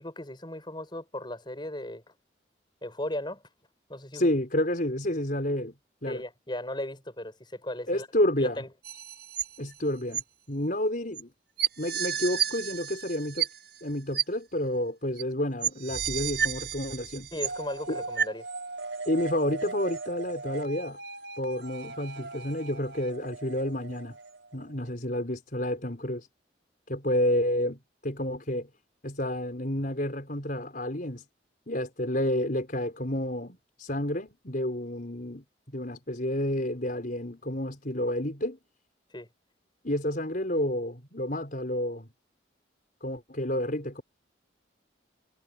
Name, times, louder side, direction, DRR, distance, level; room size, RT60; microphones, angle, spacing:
voice 1, 0.0-2.1 2.8-3.4 3.9-4.3 6.1-8.1 8.4-8.7 17.3-18.5 39.1-39.3, left 1 dB, 25° left, 5.8 m, -36 dB
voice 2, 4.1-5.7 6.0-6.2 7.9-8.6 9.6-10.2 10.5-11.3 11.8-13.5 13.8-17.3 17.9-18.0 19.0-21.0 21.4-24.2 24.5-26.3 26.9-28.7 29.0-31.2 31.7-38.6 39.8-42.1 43.0-44.0, left 1 dB, 45° left, 5.2 m, -30 dB
sound 1, 8.8-9.8 10.1-10.2 11.1-11.2 11.6-13.8 14.1-14.2 15.2-15.3 15.6-17.8 18.2-18.3, right 9 dB, 55° right, 7.8 m, -31 dB
sound 2, 17.4-24.9, right 3 dB, 75° right, 6.3 m, -40 dB
head